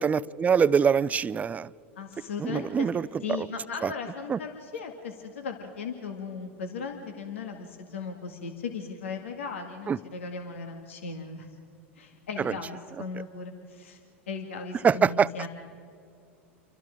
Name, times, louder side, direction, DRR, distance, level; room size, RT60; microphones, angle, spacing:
voice 1, 0.0-1.7 2.4-3.1 3.4-3.5 3.8-3.9 4.3-4.4 9.9-10.0 12.4-12.5 14.8-15.3, right 6 dB, 20° right, 19 dB, 0.5 m, -24 dB
voice 2, 2.0-2.9 3.2-11.5 12.0-14.0 14.3-15.5, left 5 dB, 85° left, 4 dB, 2.1 m, -37 dB
29.5 x 24.5 x 3.8 m, 2.5 s
hypercardioid pair, 95°, 7 cm